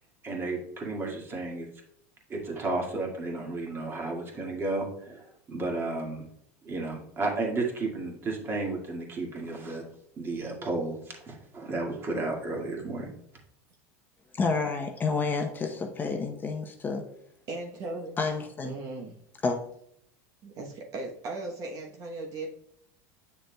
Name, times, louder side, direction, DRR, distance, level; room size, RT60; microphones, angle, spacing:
voice 1, 0.2-1.7 2.3-6.3 6.6-9.8 10.2-13.1, right 2 dB, 30° right, 0 dB, 1.9 m, -33 dB
voice 2, 14.3-17.0 18.2-18.8 19.4-19.6, left 4 dB, 25° left, 3 dB, 0.8 m, -29 dB
voice 3, 17.5-18.2 18.6-19.2 20.4-22.6, right 2 dB, 45° right, 1 dB, 1.0 m, -37 dB
7.7 x 6.4 x 2.2 m, 0.72 s
supercardioid pair, 110°, 8 cm